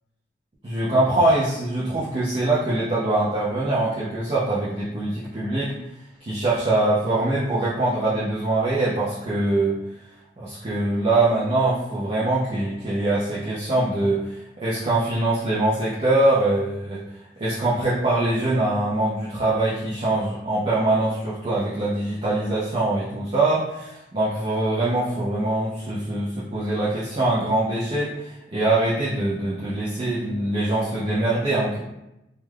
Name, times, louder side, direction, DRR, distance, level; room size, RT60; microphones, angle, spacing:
voice 1, 0.6-5.7 6.2-9.8 10.4-17.0 17.4-31.8, right 2 dB, 30° right, -8 dB, 0.4 m, -23 dB
2.2 x 2.2 x 3.2 m, 0.90 s
head